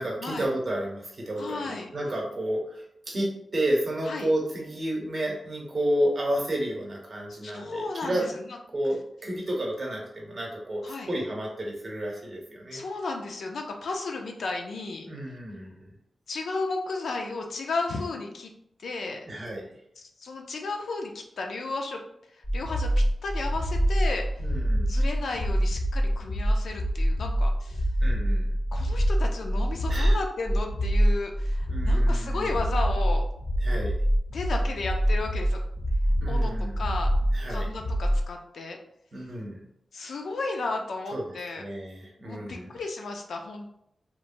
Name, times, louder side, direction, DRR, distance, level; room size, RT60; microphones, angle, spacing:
voice 1, 0.0-8.3 8.7-12.8 15.0-15.9 19.3-19.7 24.4-24.9 28.0-28.5 29.9-30.2 31.7-32.5 33.6-33.9 36.2-36.8 37.3-37.7 39.1-39.7 41.1-42.7, right 1 dB, 45° right, -1 dB, 0.7 m, -31 dB
voice 2, 1.4-1.9 4.1-4.3 7.4-8.6 10.8-11.1 12.7-15.1 16.3-18.5 18.8-19.2 20.2-22.0 22.5-22.9 23.2-24.4 24.9-27.9 28.7-33.2 34.3-35.6 36.2-37.1 37.5-38.8 39.9-41.6 42.2-43.7, left 3 dB, 75° left, 2 dB, 0.4 m, -34 dB
sound 1, 22.4-38.3, equal, 20° left, 0.5 m, -25 dB
2.9 x 2.1 x 2.5 m, 0.75 s
wide cardioid pair, 125°, 0 cm